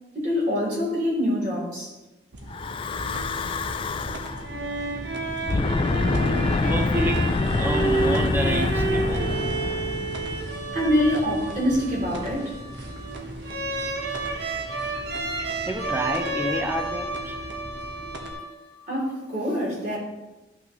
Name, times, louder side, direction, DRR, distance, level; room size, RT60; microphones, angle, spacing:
voice 1, 0.1-1.9 10.7-12.5 18.9-20.0, equal, 45° right, -4 dB, 3.2 m, -25 dB
sound 1, 2.3-18.3, right 1 dB, 85° right, 1.2 m, -38 dB
Breathing / Wind, 2.5-4.5 5.4-10.7, left 3 dB, 30° left, 0.3 m, -26 dB
sound 2, 4.2-18.9, right 3 dB, 65° right, 1.1 m, -31 dB
voice 2, 6.7-9.4 15.7-17.4, right 1 dB, 10° right, 5 dB, 0.7 m, -29 dB
12.5 x 6.0 x 3.1 m, 1.1 s
head